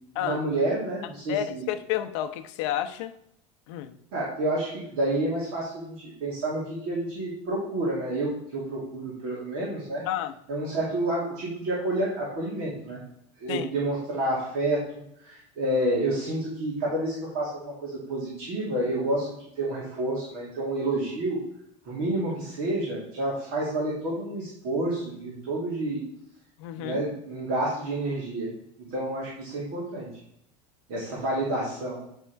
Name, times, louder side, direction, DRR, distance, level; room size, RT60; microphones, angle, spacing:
voice 1, 0.2-1.6 4.1-10.0 10.5-13.0 13.4-14.8 15.2-21.4 21.9-26.0 26.8-28.5 28.9-30.1 30.9-32.0, right 1 dB, 60° right, 2.2 m, -29 dB
voice 2, 1.3-3.1 3.7-3.9 10.1-10.3 13.5-13.7 26.6-27.0, left 11 dB, 80° left, 0.7 m, -30 dB
9.2 x 3.6 x 4.5 m
cardioid pair, 180°, 15 cm